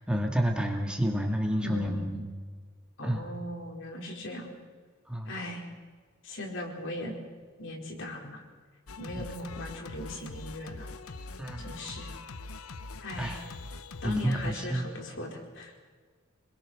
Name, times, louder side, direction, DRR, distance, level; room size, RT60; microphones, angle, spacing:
voice 1, 0.0-2.3 3.0-3.2 5.1-5.3 11.4-11.7 13.2-13.4 14.0-14.9, equal, 5° right, 1 dB, 2.2 m, -29 dB
voice 2, 1.6-2.1 3.0-4.5 5.2-5.7 6.2-7.2 7.6-8.4 9.0-10.9 11.6-12.1 13.0-13.4 14.0-15.7, left 1 dB, 60° left, 1 dB, 4.8 m, -38 dB
Singing, 8.9-14.5, left 3 dB, 90° left, 1.0 m, -43 dB
27.0 x 21.5 x 6.4 m, 1.5 s
head